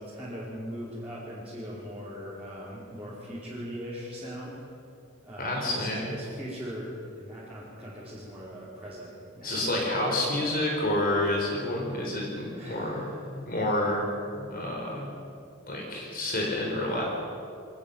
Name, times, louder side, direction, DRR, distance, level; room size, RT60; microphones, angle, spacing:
voice 1, 0.0-4.6 5.2-10.0 12.5-13.2, equal, 5° right, -11 dB, 5.0 m, -40 dB
voice 2, 5.4-6.1 9.4-14.0 14.4-15.1 15.7-17.0, left 1 dB, 45° left, -1 dB, 4.7 m, -29 dB
23.5 x 19.5 x 7.4 m, 2.5 s
head